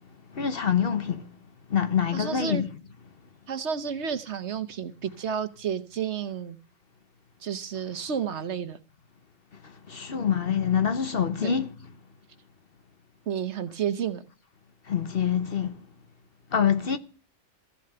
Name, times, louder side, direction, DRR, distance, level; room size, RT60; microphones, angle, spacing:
voice 1, 0.3-1.3 1.7-2.7 9.9-11.7 14.9-15.8 16.5-17.0, left 8 dB, 50° left, 1.0 m, -25 dB
voice 2, 2.1-2.6 3.5-6.6 7.4-8.8 11.4-11.5 13.3-14.2, right 7 dB, 60° right, 1.2 m, -31 dB
15.0 x 8.4 x 6.7 m
omnidirectional pair, 1.4 m